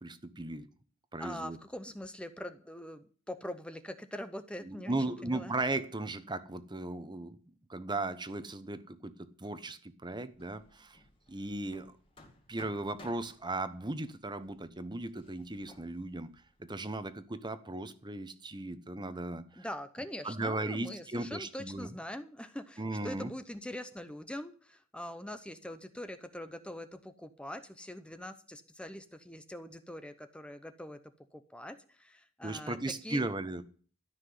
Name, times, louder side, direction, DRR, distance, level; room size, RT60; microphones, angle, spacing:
voice 1, 0.0-0.7 1.1-1.6 4.7-7.4 7.7-11.0 11.3-11.9 12.5-16.3 16.6-19.7 20.2-21.9 22.8-23.3 32.4-33.6, right 2 dB, 20° right, 1.0 m, -37 dB
voice 2, 1.2-4.9 5.2-5.5 19.6-31.0 31.3-32.8 33.0-33.3, left 1 dB, 5° left, 0.7 m, -43 dB
Hammer, 10.3-17.2, left 2 dB, 25° left, 2.1 m, -58 dB
13.0 x 6.0 x 9.4 m
head